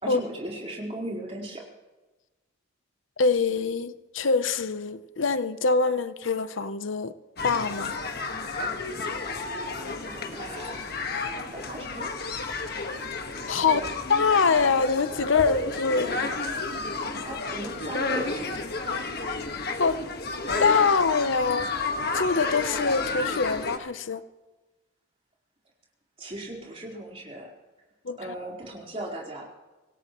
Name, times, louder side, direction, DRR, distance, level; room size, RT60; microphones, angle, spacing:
voice 1, 0.0-1.6 9.6-11.1 11.5-12.1 13.6-13.9 17.2-18.5 18.8-19.0 26.2-27.5 28.2-29.5, right 1 dB, 30° right, -2 dB, 4.2 m, -37 dB
voice 2, 3.2-7.1 7.4-7.9 13.5-13.8 14.1-16.2 19.8-20.0 20.6-21.7 22.1-24.2 28.1-28.2, left 4 dB, 75° left, 12 dB, 0.8 m, -24 dB
sound 1, 7.4-23.8, left 3 dB, 50° left, 1.6 m, -31 dB
26.0 x 17.0 x 3.1 m, 1.2 s
head